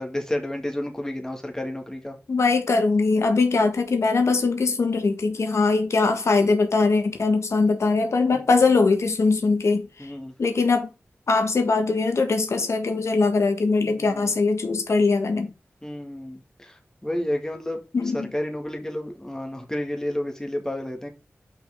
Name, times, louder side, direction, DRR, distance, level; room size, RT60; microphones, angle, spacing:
voice 1, 0.0-2.2 8.3-8.4 10.0-10.3 13.8-14.3 15.8-17.8 18.1-21.1, left 1 dB, 10° left, 1.9 m, -31 dB
voice 2, 2.3-9.9 10.4-10.9 11.3-15.5 17.9-18.3, left 3 dB, 85° left, 1.7 m, -21 dB
7.3 x 5.8 x 3.7 m
wide cardioid pair, 90°, 5 cm